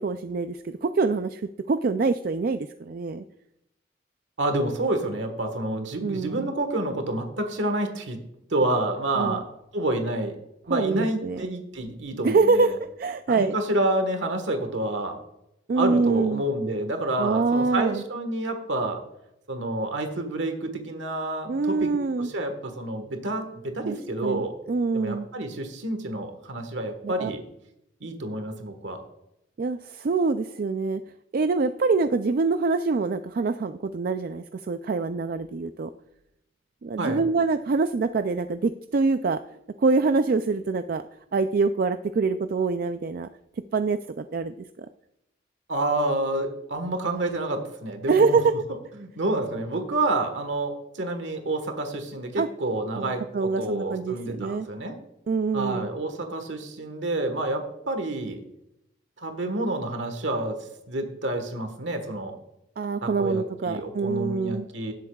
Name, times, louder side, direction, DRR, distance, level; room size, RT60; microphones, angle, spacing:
voice 1, 0.0-3.2 6.0-6.5 9.2-9.4 10.7-11.4 12.2-13.5 15.7-16.4 17.2-18.0 21.5-22.3 23.8-24.0 24.2-25.3 27.0-27.3 29.6-31.0 31.3-35.9 36.8-39.4 39.8-41.0 41.3-43.3 43.7-44.9 48.1-48.5 52.4-52.5 53.0-54.7 55.3-55.9 62.8-64.7, right 4 dB, 50° right, 9 dB, 0.4 m, -25 dB
voice 2, 4.4-8.2 8.5-9.4 9.7-10.4 10.7-12.8 13.3-15.2 15.8-19.0 19.5-24.5 24.9-27.4 28.0-29.0 37.0-37.2 45.7-48.4 49.0-55.0 55.5-58.4 59.2-60.6 60.9-62.3 63.0-64.9, right 2 dB, 85° right, 6 dB, 1.5 m, -28 dB
17.0 x 8.1 x 2.3 m, 0.83 s
head